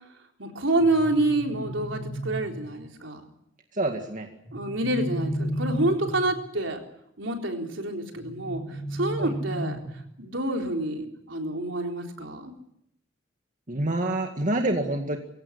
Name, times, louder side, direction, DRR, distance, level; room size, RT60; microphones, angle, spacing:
voice 1, 0.4-3.2 4.5-6.8 7.2-9.8 10.2-12.5, right 2 dB, 75° right, 3 dB, 4.0 m, -27 dB
sound 1, 0.8-2.7 4.4-6.4 8.2-10.1, right 1 dB, 15° left, 7.3 m, -33 dB
voice 2, 3.7-4.3 9.2-9.3 13.7-15.2, right 1 dB, 40° right, 4 dB, 2.0 m, -27 dB
23.5 x 17.0 x 9.9 m, 0.76 s
head